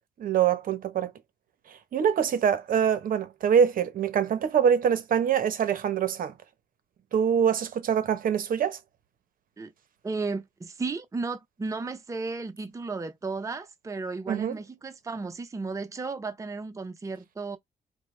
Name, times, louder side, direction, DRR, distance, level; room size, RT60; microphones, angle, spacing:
voice 1, 0.2-1.1 1.9-6.3 7.1-8.8 14.3-14.6, right 8 dB, 65° right, 0.8 m, -24 dB
voice 2, 10.0-17.6, right 3 dB, 20° right, 0.6 m, -34 dB
4.5 x 2.1 x 3.1 m
cardioid pair, 90°, 16 cm